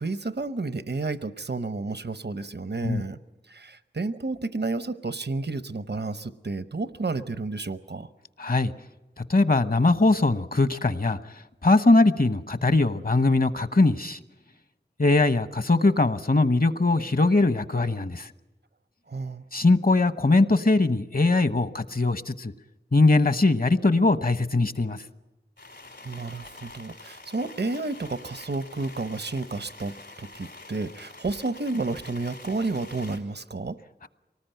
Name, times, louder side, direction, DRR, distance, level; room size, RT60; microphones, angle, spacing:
voice 1, 0.0-3.2 3.5-8.1 19.1-19.4 26.0-33.8, right 3 dB, 75° right, 13 dB, 0.9 m, -31 dB
voice 2, 8.4-8.7 9.2-11.2 11.6-14.2 15.0-18.3 19.5-22.5 22.9-25.0, left 2 dB, 60° left, 12 dB, 1.0 m, -21 dB
sound 1, 25.6-33.2, left 3 dB, 90° left, 4.9 m, -46 dB
24.5 x 19.0 x 9.2 m, 1.1 s
wide cardioid pair, 40°, 17 cm